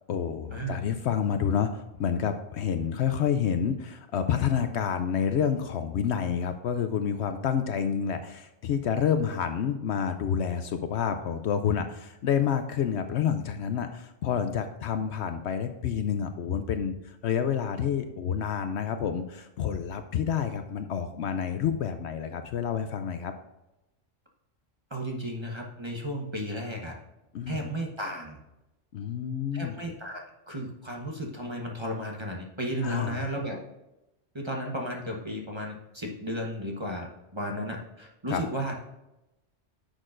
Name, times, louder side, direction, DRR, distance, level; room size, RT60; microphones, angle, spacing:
voice 1, 0.1-23.3 27.3-27.7 28.9-29.7 32.8-33.3 38.3-38.4, left 8 dB, 65° left, 8 dB, 0.8 m, -29 dB
voice 2, 24.9-26.9 27.5-28.4 29.5-33.6 34.3-38.7, equal, 25° right, 1 dB, 0.9 m, -34 dB
9.9 x 6.4 x 2.5 m, 0.95 s
omnidirectional pair, 1.3 m